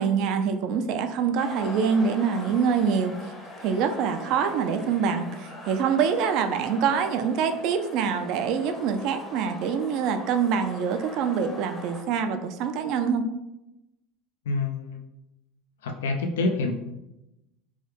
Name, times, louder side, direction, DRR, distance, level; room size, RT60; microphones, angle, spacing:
voice 1, 0.0-3.2 3.6-13.3, right 6 dB, 60° right, 7 dB, 0.3 m, -25 dB
sound 1, 1.4-12.0, left 1 dB, 20° left, 0.7 m, -42 dB
voice 2, 14.5-15.0 15.8-16.7, left 3 dB, 90° left, 4 dB, 0.3 m, -27 dB
3.1 x 2.3 x 3.2 m, 0.92 s
supercardioid pair, 95°, 0 cm